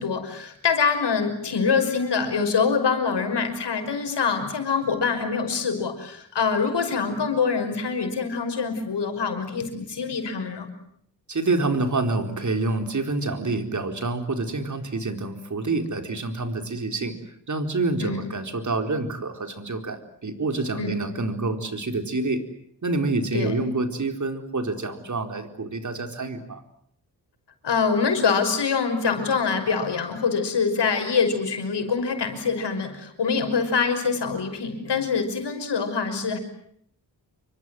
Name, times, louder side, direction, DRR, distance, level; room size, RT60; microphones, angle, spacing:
voice 1, 0.0-10.7 18.0-18.3 20.8-21.0 23.3-23.6 27.6-36.4, left 5 dB, 70° left, 6 dB, 5.8 m, -25 dB
voice 2, 11.3-22.4 22.8-26.6, right 3 dB, 45° right, 7 dB, 4.2 m, -27 dB
28.5 x 24.5 x 7.8 m, 0.67 s
cardioid pair, 85°, 42 cm